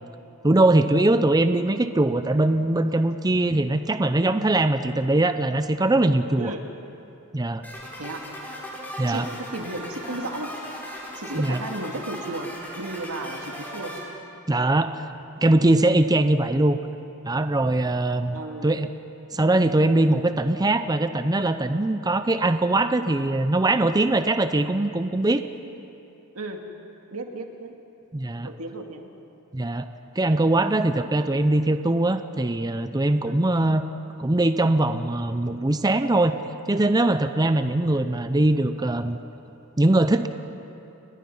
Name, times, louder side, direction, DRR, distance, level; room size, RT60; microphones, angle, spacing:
voice 1, 0.4-6.5 7.3-7.6 9.0-9.3 11.4-11.6 14.5-15.1 15.4-16.8 17.2-18.9 19.3-25.4 28.1-28.5 29.5-29.9 30.2-33.8 34.2-36.4 36.7-39.2 39.8-40.3, right 2 dB, 20° right, 9 dB, 0.6 m, -21 dB
sound 1, 7.6-14.0, equal, 10° left, 5.2 m, -38 dB
voice 2, 9.1-10.5 11.1-14.0 18.3-18.7 26.3-26.6 27.1-27.7 28.4-29.1 33.2-33.4 37.4-37.6, right 2 dB, 85° right, 3 dB, 2.1 m, -34 dB
29.5 x 21.0 x 5.6 m, 2.8 s
head